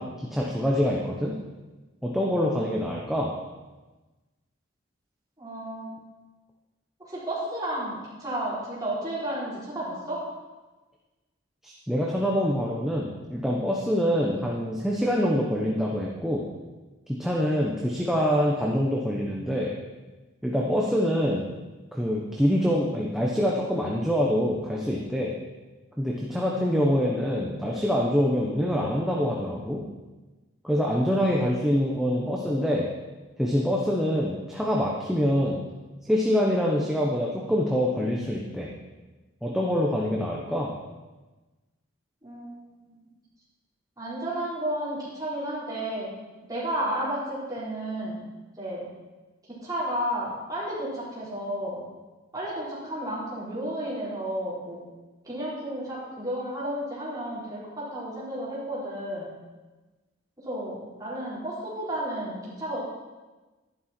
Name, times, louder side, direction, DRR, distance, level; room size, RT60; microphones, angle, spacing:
voice 1, 0.0-1.4 2.0-3.3 11.6-16.4 17.1-19.7 20.4-21.5 21.9-25.3 26.0-29.8 30.6-32.9 33.4-35.6 36.1-38.7 39.4-40.7, equal, ahead, -3 dB, 1.0 m, -25 dB
voice 2, 5.4-5.9 7.0-10.2 42.2-42.6 42.8-43.0 44.0-46.1 46.5-48.2 48.6-48.9 49.5-51.8 52.3-54.8 55.2-59.3 60.4-62.8, right 1 dB, 20° right, -9 dB, 4.6 m, -32 dB
12.0 x 11.0 x 4.5 m, 1.2 s
head